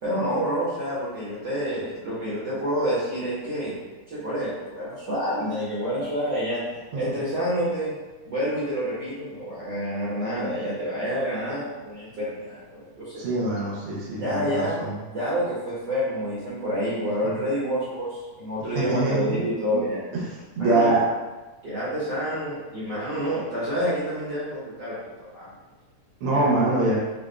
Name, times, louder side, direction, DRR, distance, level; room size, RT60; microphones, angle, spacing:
voice 1, 0.0-3.7 4.1-6.6 6.9-8.0 8.3-13.2 14.2-14.8 15.1-20.0 20.6-20.9 21.6-25.5 26.3-26.5, equal, 50° right, -10 dB, 1.4 m, -28 dB
voice 2, 13.2-14.9 18.7-19.4 19.7-19.8 20.6-21.0 26.2-27.0, right 2 dB, 75° right, -5 dB, 1.2 m, -24 dB
6.6 x 2.4 x 3.3 m, 1.2 s
omnidirectional pair, 3.6 m